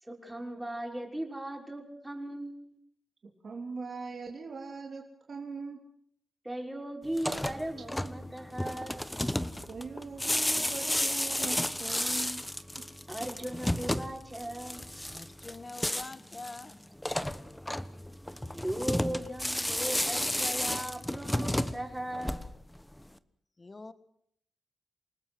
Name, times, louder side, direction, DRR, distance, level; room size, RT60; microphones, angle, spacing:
voice 1, 0.0-2.7 6.4-9.1 13.1-14.8 18.5-22.4, right 1 dB, 10° right, 2 dB, 5.7 m, -38 dB
voice 2, 3.2-5.8 9.7-12.4 12.7-13.0, right 4 dB, 50° right, 2 dB, 3.4 m, -41 dB
sound 1, 7.1-22.8, left 1 dB, 10° left, 1.3 m, -33 dB
voice 3, 15.1-16.8 23.6-23.9, left 3 dB, 30° left, 13 dB, 1.8 m, -45 dB
28.5 x 19.5 x 6.4 m, 0.67 s
cardioid pair, 85°, 0 cm